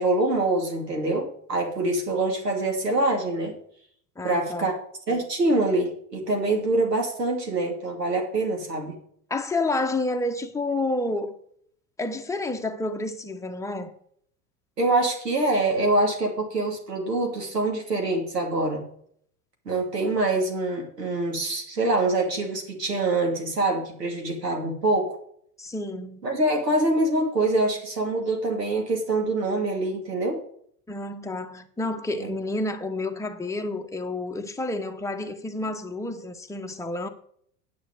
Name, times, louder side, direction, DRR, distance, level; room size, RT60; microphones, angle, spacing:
voice 1, 0.0-3.5 4.2-4.7 5.1-9.0 14.8-18.8 19.6-25.2 26.2-30.4 32.2-32.3, right 2 dB, 90° right, 2.8 m, -25 dB
voice 2, 4.2-4.8 9.3-11.4 12.0-13.9 25.6-26.2 30.9-37.1, left 2 dB, 5° left, 1.1 m, -29 dB
9.7 x 6.7 x 6.5 m
hypercardioid pair, 85°, 47 cm